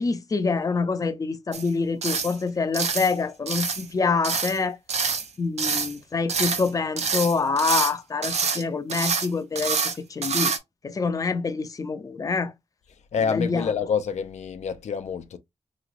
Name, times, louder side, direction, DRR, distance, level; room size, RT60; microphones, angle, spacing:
voice 1, 0.0-5.1 5.4-9.8 10.1-10.5 10.8-12.5 13.3-13.7, left 4 dB, 30° left, 0.4 m, -26 dB
sound 1, 1.5-1.7 2.0-2.3 2.7-3.1 3.5-3.9 4.2-4.6 4.9-5.3 5.6-5.9 6.3-6.7 7.0-7.9 8.2-8.6 8.9-9.3 9.5-9.9 10.2-10.6, right 5 dB, 75° right, 0.7 m, -26 dB
voice 2, 13.1-15.4, left 6 dB, 90° left, 0.4 m, -27 dB
3.1 x 2.9 x 2.4 m
wide cardioid pair, 115°, 11 cm